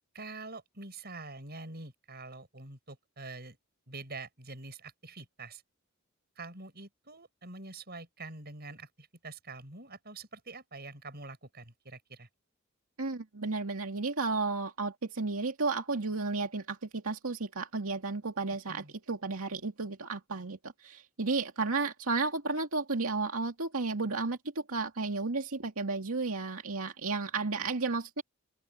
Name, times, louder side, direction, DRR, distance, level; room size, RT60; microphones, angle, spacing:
voice 1, 0.1-3.6 3.9-5.6 6.4-12.3 18.7-18.9, right 3 dB, 45° right, 7.3 m, -45 dB
voice 2, 13.0-24.4 24.7-28.2, right 3 dB, 80° right, 2.1 m, -33 dB
open air
head